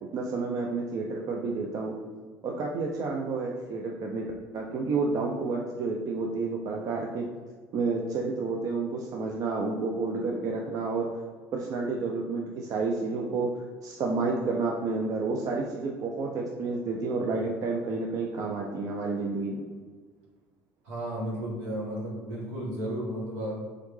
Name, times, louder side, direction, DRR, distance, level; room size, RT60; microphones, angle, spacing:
voice 1, 0.0-1.9 2.4-7.3 7.7-11.1 11.5-19.6, right 3 dB, 55° right, 0 dB, 0.4 m, -30 dB
voice 2, 20.8-23.6, right 1 dB, 85° right, -4 dB, 1.2 m, -33 dB
3.7 x 3.2 x 3.1 m, 1.5 s
hypercardioid pair, 70°, 7 cm